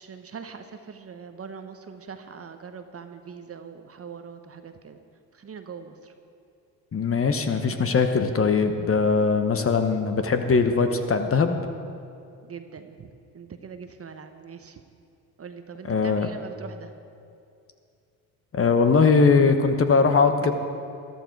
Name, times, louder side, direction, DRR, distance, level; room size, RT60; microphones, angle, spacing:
voice 1, 0.0-5.0 5.3-6.1 12.4-14.8 15.4-17.0, right 6 dB, 35° right, 8 dB, 1.0 m, -42 dB
voice 2, 6.9-11.6 15.8-16.3 18.5-20.5, left 4 dB, 30° left, 7 dB, 1.1 m, -21 dB
13.5 x 12.0 x 4.7 m, 2.5 s
hypercardioid pair, 60°, 43 cm